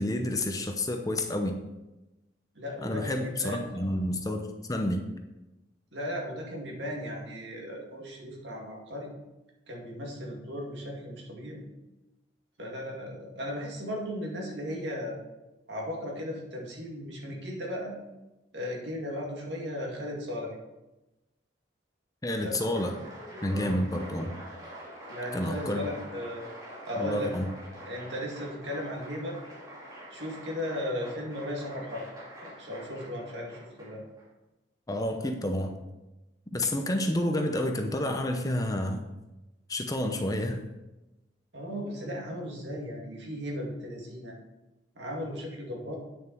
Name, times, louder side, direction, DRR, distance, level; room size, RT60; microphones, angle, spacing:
voice 1, 0.0-1.6 2.8-5.0 22.2-22.9 23.4-24.3 25.3-25.9 27.0-27.5 34.9-35.8 36.5-39.1 39.7-40.6, left 1 dB, 20° left, 5 dB, 0.7 m, -29 dB
voice 2, 2.6-4.0 5.9-9.1 9.7-11.7 12.6-15.2 15.7-18.0 18.5-20.6 22.4-22.9 23.5-23.7 25.1-26.5 26.9-27.3 27.9-29.4 30.1-32.0 32.4-34.0 41.5-44.4 45.0-46.0, left 1 dB, 70° right, -1 dB, 2.2 m, -36 dB
Applause, 22.3-34.2, equal, 20° right, 2.7 m, -45 dB
9.1 x 6.6 x 4.5 m, 1.0 s
head